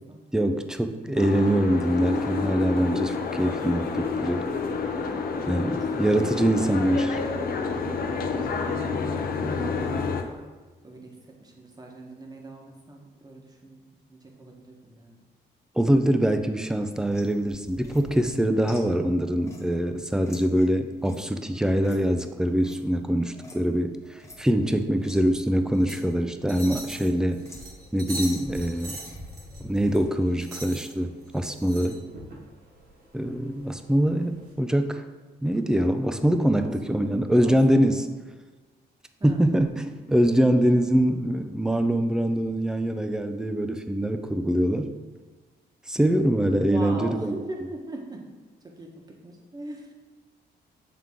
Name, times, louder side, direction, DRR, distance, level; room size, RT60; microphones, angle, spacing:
voice 1, 0.3-4.5 5.5-7.1 15.8-27.4 27.9-29.0 29.6-32.0 33.1-35.0 35.4-38.0 39.2-44.9 45.9-47.3, right 1 dB, 5° right, 8 dB, 0.4 m, -24 dB
Boat Water vehicle, 1.2-10.2, left 4 dB, 55° left, 0.6 m, -29 dB
voice 2, 4.8-6.3 6.5-6.9 8.0-10.5 10.8-15.2 18.5-18.7 36.5-38.2 39.2-39.5 40.6-40.7 46.6-48.3 48.6-49.9, right 1 dB, 20° right, 0 dB, 1.1 m, -42 dB
sound 1, 17.0-23.8 24.0-25.3 25.8-26.0 26.3-26.9 27.4-27.9 28.2-30.1, left 1 dB, 15° left, 1.0 m, -47 dB
sound 2, 25.7-34.5, right 2 dB, 60° right, 1.5 m, -42 dB
7.5 x 3.6 x 3.6 m, 1.3 s
cardioid pair, 100°, 18 cm